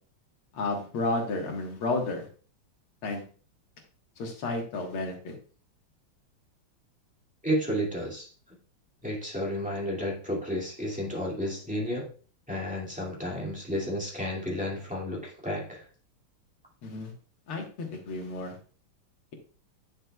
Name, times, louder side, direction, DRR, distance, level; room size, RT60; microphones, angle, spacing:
voice 1, 0.5-2.3 3.0-3.2 4.2-5.3 16.8-17.1 17.5-18.6, left 2 dB, 85° left, 1 dB, 2.5 m, -32 dB
voice 2, 7.4-8.3 9.0-12.1 12.5-15.9, equal, 5° right, -3 dB, 2.1 m, -32 dB
9.4 x 6.4 x 2.3 m, 0.40 s
omnidirectional pair, 2.3 m